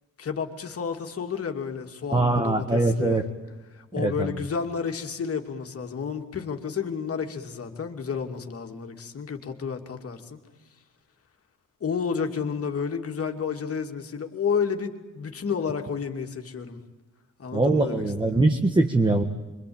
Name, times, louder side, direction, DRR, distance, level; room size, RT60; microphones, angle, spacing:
voice 1, 0.2-3.2 3.7-10.4 11.8-16.8 17.4-18.4, left 6 dB, 50° left, 4 dB, 2.7 m, -31 dB
voice 2, 2.1-3.2 3.9-4.4 17.5-19.2, right 2 dB, 15° right, 4 dB, 1.5 m, -22 dB
26.5 x 24.5 x 8.9 m, 1.2 s
cardioid pair, 115°, 31 cm